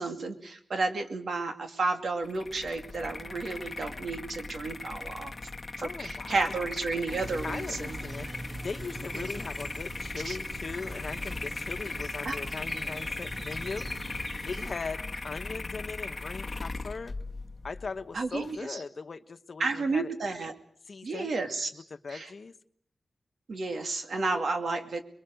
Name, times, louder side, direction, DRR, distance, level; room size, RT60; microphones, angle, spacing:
voice 1, 0.0-5.3 5.8-8.0 9.1-9.3 10.3-10.4 12.2-12.4 18.1-18.8 19.6-20.5 21.0-21.7 22.1-22.3 23.5-25.0, right 3 dB, 75° right, 6 dB, 2.4 m, -32 dB
sound 1, 2.2-18.6, left 3 dB, 30° left, 1.2 m, -38 dB
voice 2, 5.8-6.6 7.4-13.9 14.5-17.1 17.6-20.1 20.9-21.3 21.7-22.5, left 4 dB, 55° left, 10 dB, 1.1 m, -39 dB
sound 2, 7.1-14.8, right 1 dB, 30° right, 1.9 m, -42 dB
28.5 x 22.0 x 6.4 m, 0.65 s
wide cardioid pair, 110°, 0 cm